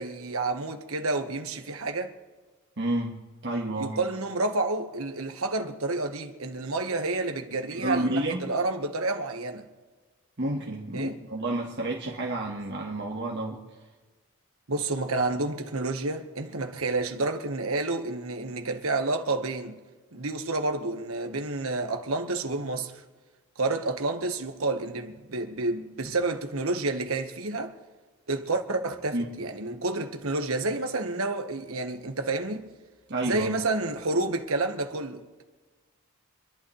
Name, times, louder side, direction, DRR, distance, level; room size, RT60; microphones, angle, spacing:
voice 1, 0.0-2.1 3.8-9.6 10.9-11.2 14.7-19.8 20.1-22.9 23.6-27.8 28.3-32.7 33.2-35.4, right 2 dB, 75° right, 1.4 m, -29 dB
voice 2, 2.8-3.1 3.4-4.0 7.8-8.5 10.4-13.6 29.1-29.2 33.1-33.6, right 1 dB, 55° right, 1.5 m, -30 dB
26.5 x 11.5 x 3.3 m
head